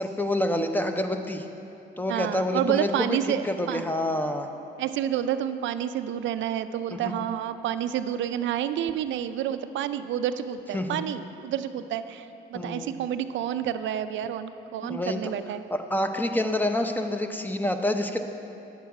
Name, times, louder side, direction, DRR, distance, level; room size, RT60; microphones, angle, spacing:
voice 1, 0.0-1.5 2.0-3.2 3.4-4.5 6.9-7.1 10.7-11.1 12.5-12.9 14.8-15.2 15.7-18.2, left 1 dB, 10° left, 6 dB, 0.6 m, -27 dB
voice 2, 2.1-3.8 4.8-15.6, right 10 dB, 70° right, 11 dB, 0.4 m, -29 dB
9.5 x 7.7 x 4.7 m, 2.8 s
cardioid pair, 90°, 20 cm